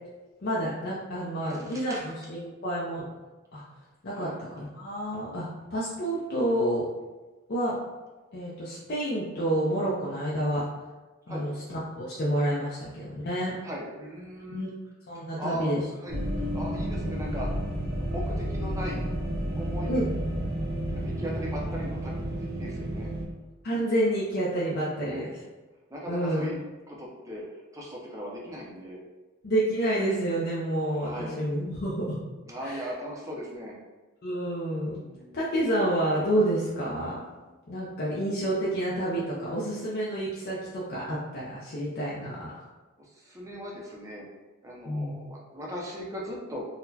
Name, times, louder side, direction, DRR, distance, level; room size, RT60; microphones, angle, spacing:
voice 1, 0.4-3.1 3.5-3.6 4.0-4.3 4.6-6.9 7.5-7.8 8.3-10.6 11.3-13.6 14.5-14.7 15.1-15.8 19.9-20.1 23.6-25.3 26.1-26.5 29.4-32.1 32.6-32.8 34.2-35.0 35.3-37.2 37.7-42.5 44.9-45.2, right 1 dB, 45° left, -7 dB, 0.5 m, -29 dB
voice 2, 1.4-2.0 4.1-4.3 11.3-11.5 13.6-14.6 15.1-17.5 17.8-19.1 19.5-19.9 20.9-23.1 25.0-25.3 25.9-26.6 26.9-27.4 27.7-29.0 30.8-31.4 32.5-33.8 35.0-35.4 43.0-44.2 44.6-46.7, equal, 15° right, -3 dB, 0.5 m, -38 dB
sound 1, 16.1-23.2, equal, 45° right, 0.8 m, -31 dB
3.9 x 2.1 x 2.7 m, 1.2 s
head